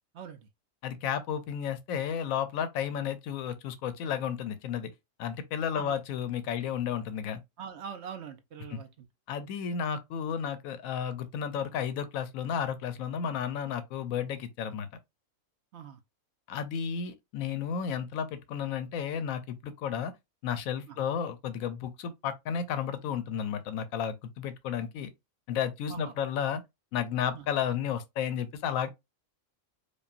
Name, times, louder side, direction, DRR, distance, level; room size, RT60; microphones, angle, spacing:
voice 1, 0.1-0.5 5.7-6.0 7.6-9.1 15.7-16.0 20.9-21.0 25.9-26.1 27.3-27.5, right 7 dB, 65° right, 0.8 m, -43 dB
voice 2, 0.8-4.9 5.2-7.4 8.7-8.8 9.3-14.9 16.5-20.1 20.4-25.1 25.5-26.6 26.9-28.9, left 8 dB, 85° left, 1.0 m, -32 dB
5.3 x 2.3 x 2.5 m
omnidirectional pair, 1.4 m